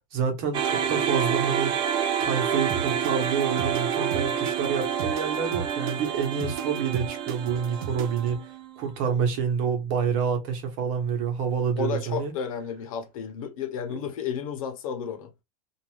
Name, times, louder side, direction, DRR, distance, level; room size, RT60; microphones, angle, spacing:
voice 1, 0.1-1.8 2.2-8.4 8.8-12.3 13.9-14.0, right 7 dB, 50° right, 1.2 m, -28 dB
sound 1, 0.5-8.8, right 8 dB, 25° right, 0.5 m, -28 dB
sound 2, 2.7-8.3, right 6 dB, 80° right, 0.8 m, -35 dB
voice 2, 11.8-15.3, left 7 dB, 80° left, 0.9 m, -32 dB
2.6 x 2.5 x 3.2 m
supercardioid pair, 145°, 18 cm